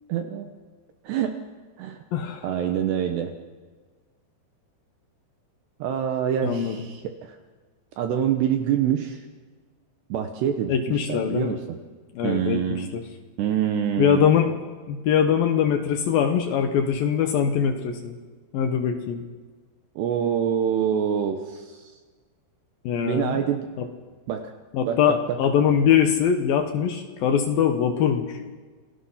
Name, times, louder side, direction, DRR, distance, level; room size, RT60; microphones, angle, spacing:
voice 1, 0.1-0.5 1.0-1.4 1.8-2.0 2.4-3.3 5.8-7.4 8.0-9.2 10.1-11.8 12.2-12.9 13.4-14.3 20.0-21.9 23.1-23.7 24.3-24.5 24.9-25.4, right 9 dB, 75° right, 6 dB, 2.8 m, -26 dB
voice 2, 2.1-2.5 6.4-6.8 10.7-11.6 12.2-13.0 14.0-14.6 14.9-18.2 18.5-19.2 22.8-23.4 23.8-23.9 24.7-28.6, left 8 dB, 75° left, 5 dB, 2.2 m, -22 dB
28.5 x 19.0 x 5.7 m, 1.4 s
omnidirectional pair, 5.6 m